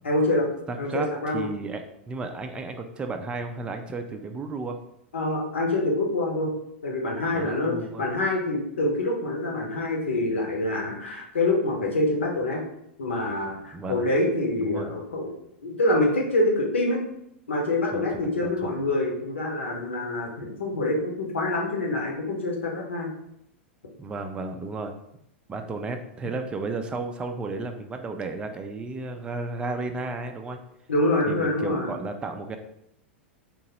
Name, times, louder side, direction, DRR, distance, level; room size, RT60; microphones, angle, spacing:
voice 1, 0.0-0.5 0.8-1.5 5.1-6.5 6.8-12.6 13.0-15.3 15.6-17.0 17.5-23.1 30.9-31.9, left 2 dB, 75° left, 0 dB, 1.0 m, -26 dB
voice 2, 0.7-1.1 1.3-4.8 7.3-8.1 13.7-14.0 14.6-14.9 17.9-18.7 24.0-24.9 25.5-30.6 31.3-32.6, right 3 dB, 15° right, 5 dB, 0.4 m, -33 dB
3.7 x 2.8 x 2.9 m, 0.76 s
figure-of-eight pair, 95°, 6 cm